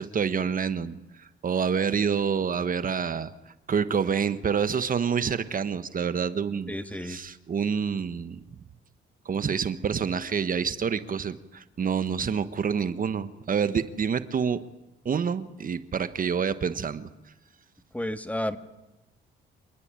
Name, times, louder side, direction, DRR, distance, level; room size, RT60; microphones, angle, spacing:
voice 1, 0.0-6.7 7.0-8.4 9.2-14.6 15.0-17.1, right 6 dB, 45° right, 12 dB, 1.3 m, -27 dB
voice 2, 6.7-7.2 17.9-18.6, left 1 dB, 5° left, 10 dB, 1.8 m, -31 dB
27.0 x 20.0 x 9.0 m, 0.94 s
cardioid pair, 90°, 20 cm